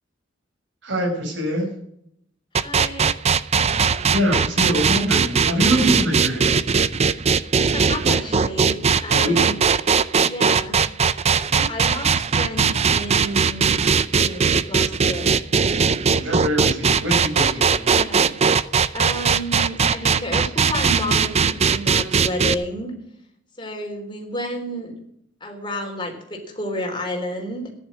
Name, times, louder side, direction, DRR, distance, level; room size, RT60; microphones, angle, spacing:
voice 1, 0.8-1.7 4.1-6.5 9.1-9.5 11.5-11.6 16.2-18.0, equal, 70° right, 0 dB, 5.5 m, -24 dB
sound 1, 2.5-22.5, right 6 dB, 35° right, 0.5 m, -19 dB
voice 2, 2.6-3.2 7.5-9.6 10.2-10.8 11.7-13.8 14.1-15.4 17.9-18.4 18.9-22.9 23.6-24.9 25.4-27.7, equal, 25° left, 2 dB, 3.5 m, -31 dB
14.5 x 10.5 x 6.2 m, 0.71 s
head